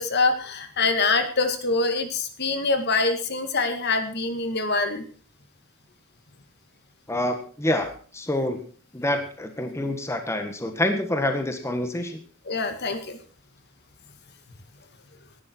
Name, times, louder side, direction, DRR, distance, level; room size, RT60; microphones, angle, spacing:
voice 1, 0.0-5.1 12.5-13.2, left 3 dB, 50° left, 8 dB, 1.9 m, -24 dB
voice 2, 7.1-8.6 8.9-12.2, left 1 dB, 15° left, 6 dB, 1.6 m, -27 dB
19.0 x 11.0 x 4.5 m, 0.41 s
head